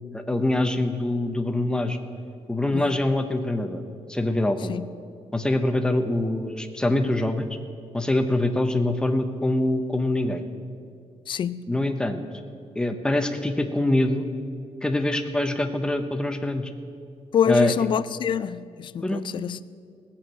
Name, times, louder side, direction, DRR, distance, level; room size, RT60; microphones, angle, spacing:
voice 1, 0.1-2.0 2.5-3.8 4.1-4.8 5.3-7.5 7.9-10.4 11.7-12.2 12.8-14.3 14.8-16.7 17.5-17.7 19.0-19.3, left 1 dB, 5° left, 0.8 m, -24 dB
voice 2, 11.3-11.7 17.3-19.6, left 8 dB, 45° left, 0.4 m, -26 dB
17.0 x 7.2 x 7.7 m
wide cardioid pair, 160°, 11 cm